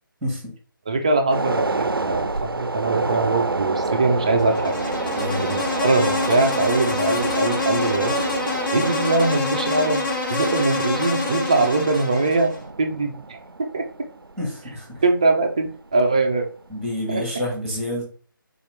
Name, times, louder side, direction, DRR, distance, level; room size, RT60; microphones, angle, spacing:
voice 1, 0.2-0.5 5.1-5.5 10.3-10.5 14.4-15.0 16.7-18.0, left 1 dB, ahead, -1 dB, 1.0 m, -29 dB
voice 2, 0.9-4.7 5.4-8.2 8.7-10.0 10.3-12.5 12.8-13.8 15.0-16.5 17.1-17.2, right 3 dB, 15° right, 4 dB, 0.3 m, -22 dB
sound 1, 1.3-15.9 16.2-16.4, right 3 dB, 85° right, 0.4 m, -29 dB
Insect, 4.4-12.6, left 3 dB, 70° left, 1.6 m, -26 dB
3.9 x 2.8 x 3.2 m, 0.40 s
figure-of-eight pair, 155°, 12 cm